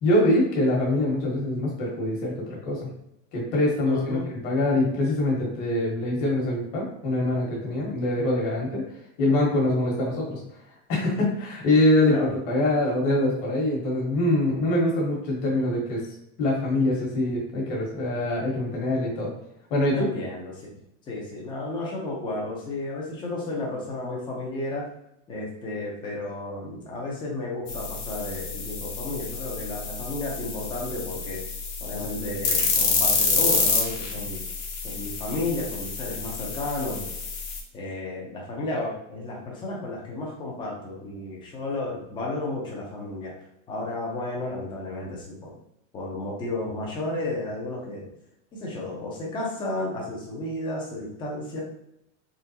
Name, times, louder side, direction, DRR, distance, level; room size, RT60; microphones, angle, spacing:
voice 1, 0.0-2.9 3.3-8.8 9.2-10.4 10.9-16.0 16.4-19.3 19.7-20.1, left 1 dB, 35° left, -3 dB, 1.4 m, -24 dB
voice 2, 3.8-4.2 12.1-12.3 19.9-20.8 21.1-24.9 25.3-31.4 31.8-34.4 34.8-37.2 37.7-43.3 43.7-45.5 45.9-48.1 48.5-51.6, left 2 dB, 10° left, -3 dB, 0.6 m, -32 dB
sound 1, 27.7-37.6, left 4 dB, 70° left, 1.2 m, -28 dB
3.8 x 3.2 x 2.8 m, 0.79 s
supercardioid pair, 170°, 38 cm